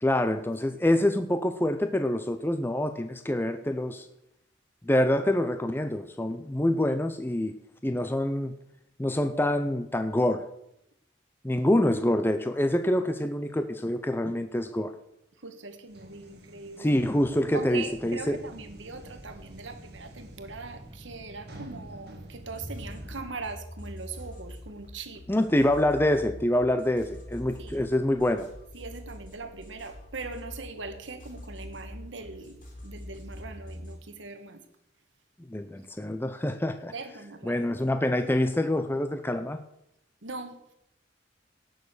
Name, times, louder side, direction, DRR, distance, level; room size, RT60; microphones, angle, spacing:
voice 1, 0.0-4.1 4.8-7.5 7.8-8.5 9.0-10.4 11.4-14.9 16.8-18.4 25.3-28.5 35.5-36.9 37.4-39.6, left 1 dB, 10° left, 9 dB, 0.6 m, -26 dB
voice 2, 15.4-16.9 17.5-25.3 27.6-27.8 28.7-32.6 32.8-34.6 36.9-37.9 40.2-40.6, right 3 dB, 70° right, 8 dB, 1.4 m, -41 dB
sound 1, 15.9-24.1, right 1 dB, 55° right, 2.1 m, -50 dB
sound 2, 16.9-23.2, right 1 dB, 25° right, 1.1 m, -49 dB
sound 3, 22.5-34.0, left 1 dB, 40° left, 4.0 m, -44 dB
17.5 x 6.5 x 6.6 m, 0.80 s
head